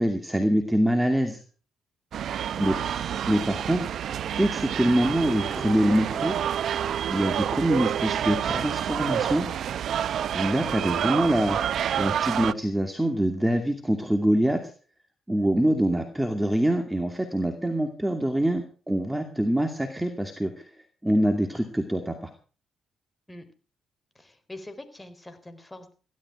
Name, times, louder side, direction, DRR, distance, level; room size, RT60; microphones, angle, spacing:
voice 1, 0.0-1.4 2.6-2.8 3.3-3.9 4.4-6.4 7.1-9.5 10.3-14.6 15.3-20.6 21.0-22.3, right 1 dB, 10° right, 6 dB, 2.5 m, -24 dB
sound 1, 2.1-12.5, right 9 dB, 65° right, 0.7 m, -28 dB
voice 2, 2.5-3.1 23.3-23.4 24.1-25.9, left 1 dB, 10° left, 9 dB, 4.2 m, -43 dB
16.0 x 12.5 x 5.0 m, 0.39 s
cardioid pair, 90°, 0 cm